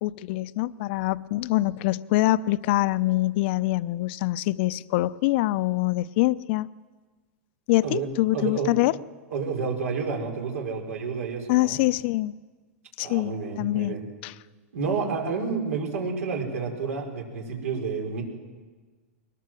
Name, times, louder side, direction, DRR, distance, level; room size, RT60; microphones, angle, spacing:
voice 1, 0.0-6.7 7.7-8.9 11.5-12.3 13.0-14.0 14.2-14.3, left 17 dB, 50° left, 16 dB, 0.6 m, -24 dB
voice 2, 8.3-8.7 9.3-11.8 13.0-14.0 14.7-18.2, right 5 dB, 90° right, 2 dB, 5.0 m, -30 dB
22.0 x 19.5 x 7.7 m, 1.4 s
supercardioid pair, 145°, 8 cm